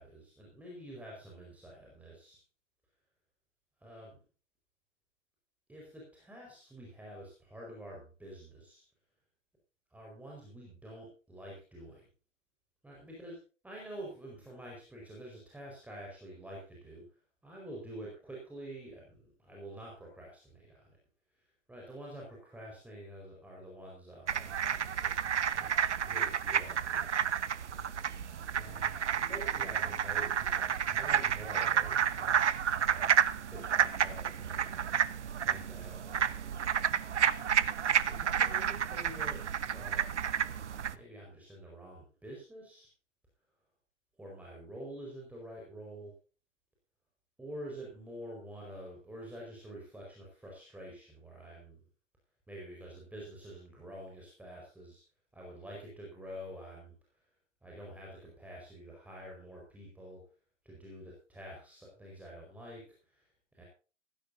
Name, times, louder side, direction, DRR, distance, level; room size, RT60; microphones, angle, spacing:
voice 1, 0.0-2.4 3.8-4.2 5.7-8.8 9.9-12.0 12.8-13.4 13.6-17.0 17.4-21.0 21.4-25.2 25.5-25.7 26.0-27.2 28.5-35.0 35.4-36.6 38.1-39.5 39.7-40.1 40.9-42.9 44.2-46.1 47.4-51.8 52.5-55.0 55.3-57.2 57.6-60.2 60.6-63.6, right 1 dB, 5° right, -2 dB, 4.8 m, -48 dB
sound 1, 24.3-41.0, right 8 dB, 70° right, 1.1 m, -31 dB
16.5 x 16.0 x 2.7 m, 0.36 s
figure-of-eight pair, 115°, 37 cm